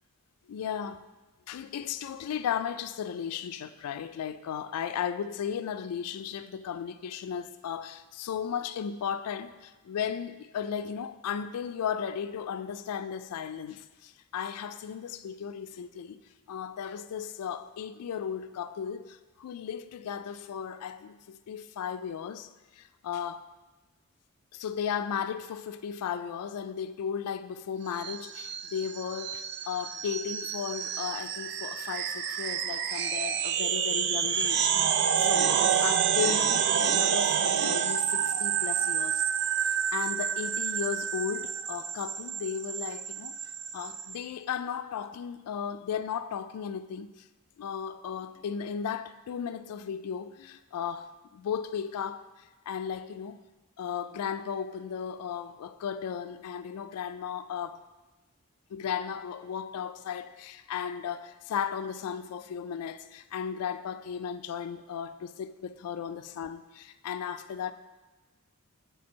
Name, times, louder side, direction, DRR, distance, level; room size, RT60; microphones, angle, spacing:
voice 1, 0.5-1.0 1.5-16.2 16.5-23.5 24.5-39.2 39.9-43.4 43.7-47.1 47.6-52.3 52.7-53.4 53.8-57.8 58.7-67.7, left 7 dB, 85° left, 0.3 m, -35 dB
sound 1, 27.9-44.2, right 8 dB, 50° right, 0.3 m, -28 dB
7.4 x 3.3 x 4.4 m
head